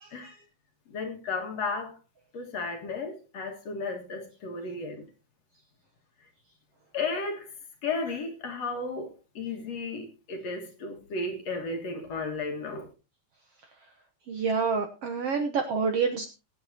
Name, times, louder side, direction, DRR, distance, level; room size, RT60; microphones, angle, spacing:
voice 1, 0.0-0.3 14.3-16.3, right 5 dB, 65° right, 1.6 m, -28 dB
voice 2, 0.9-1.9 2.3-5.0 6.9-7.5 7.8-12.9, left 3 dB, 55° left, 2.6 m, -34 dB
21.5 x 8.6 x 2.8 m
omnidirectional pair, 3.8 m